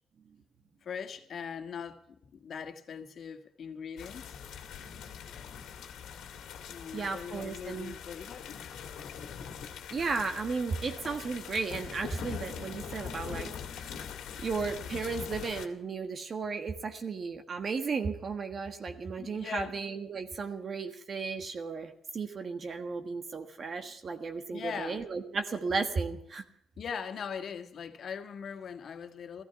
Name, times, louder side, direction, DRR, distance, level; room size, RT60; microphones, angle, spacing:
voice 1, 0.8-4.4 6.7-8.6 19.2-19.8 24.5-25.0 26.8-29.4, left 7 dB, 55° left, 1.8 m, -40 dB
sound 1, 4.0-15.7, left 7 dB, 80° left, 1.9 m, -42 dB
voice 2, 6.9-7.9 9.9-13.5 13.8-13.9 14.4-26.4, right 4 dB, 45° right, 1.5 m, -34 dB
15.0 x 14.5 x 5.9 m
cardioid pair, 90°, 0 cm